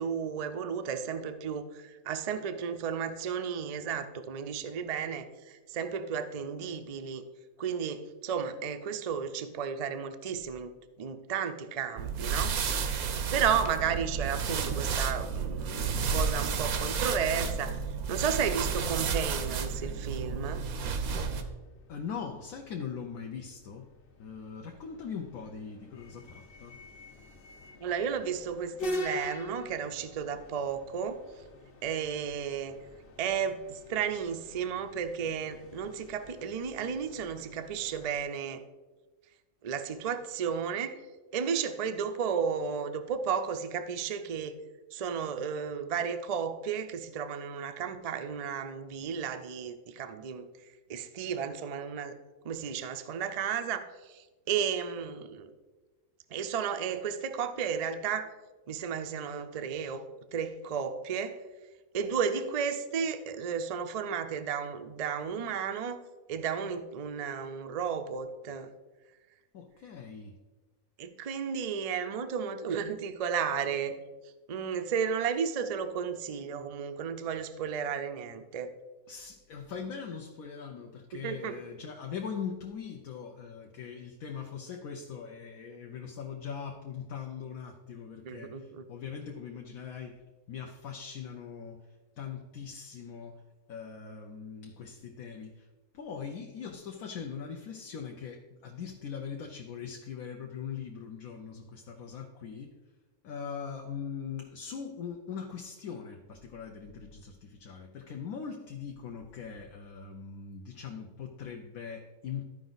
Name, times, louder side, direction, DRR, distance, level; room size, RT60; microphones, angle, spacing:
voice 1, 0.0-7.2 7.6-17.8 18.1-20.6 27.8-31.2 31.8-32.8 33.2-38.6 39.6-40.9 41.3-44.5 44.9-50.5 50.9-52.1 52.4-55.5 56.3-58.3 58.7-60.0 60.3-61.4 61.9-66.0 66.3-68.7 71.0-74.0 74.5-78.7 81.1-81.6 88.2-88.8, right 7 dB, 65° right, 8 dB, 0.3 m, -33 dB
sound 1, 12.0-21.4, right 5 dB, 90° right, 1.3 m, -31 dB
sound 2, 21.0-38.2, left 1 dB, 45° left, 0.9 m, -45 dB
voice 2, 21.9-23.9 24.2-26.8 69.5-70.4 79.1-90.2 90.5-91.9 92.2-93.4 93.7-95.7 95.9-102.7 103.2-112.4, left 6 dB, 75° left, 2 dB, 1.1 m, -41 dB
13.0 x 5.0 x 4.0 m, 1.2 s
omnidirectional pair, 1.5 m